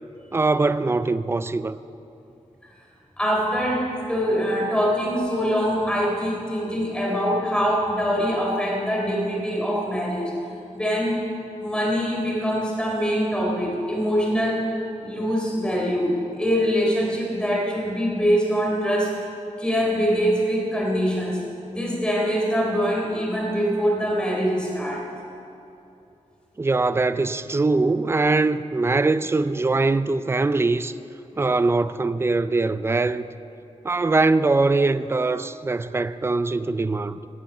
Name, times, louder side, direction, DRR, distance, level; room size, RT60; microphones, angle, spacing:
voice 1, 0.3-1.8 26.6-30.9 31.4-33.3 33.8-37.2, right 3 dB, 20° right, 0.4 m, -22 dB
voice 2, 3.2-10.3 10.7-11.1 11.6-14.7 15.0-19.2 19.6-21.4 21.7-25.0 31.3-31.4, equal, 5° left, 3.6 m, -23 dB
17.0 x 9.1 x 7.2 m
wide cardioid pair, 115°, 13 cm